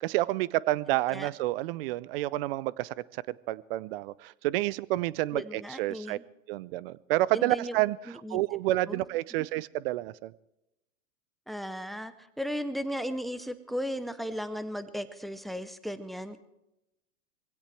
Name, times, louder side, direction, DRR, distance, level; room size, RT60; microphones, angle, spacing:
voice 1, 0.0-6.2 6.5-10.3, right 17 dB, 45° right, 0.6 m, -29 dB
voice 2, 5.3-6.2 7.3-7.8 8.2-8.4 8.9-9.0 11.5-16.4, equal, ahead, 0.6 m, -35 dB
23.5 x 16.5 x 3.3 m
hypercardioid pair, 120°, 40 cm